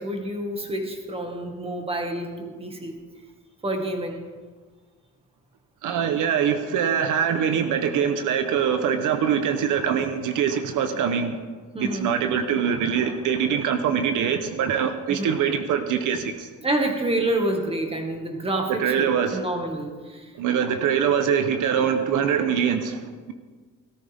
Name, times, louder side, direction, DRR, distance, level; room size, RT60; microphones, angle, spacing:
voice 1, 0.0-2.9 3.6-4.2 11.7-12.1 15.1-15.4 16.6-20.3, right 1 dB, 20° right, 3 dB, 2.0 m, -28 dB
voice 2, 5.8-11.4 11.8-16.5 18.7-19.4 20.3-23.3, right 7 dB, 80° right, 8 dB, 1.0 m, -23 dB
17.5 x 13.5 x 3.6 m, 1.5 s
cardioid pair, 115°, 31 cm